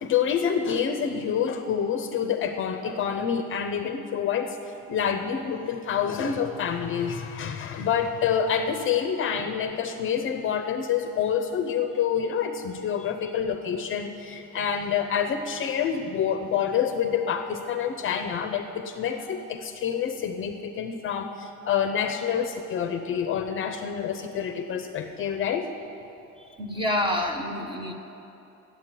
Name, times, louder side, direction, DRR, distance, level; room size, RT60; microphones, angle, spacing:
voice 1, 0.0-4.6 4.9-25.7, left 7 dB, 40° left, 7 dB, 0.6 m, -27 dB
voice 2, 26.6-27.9, left 1 dB, 15° right, 3 dB, 0.9 m, -27 dB
11.5 x 8.3 x 9.0 m, 2.9 s
cardioid pair, 175°, 33 cm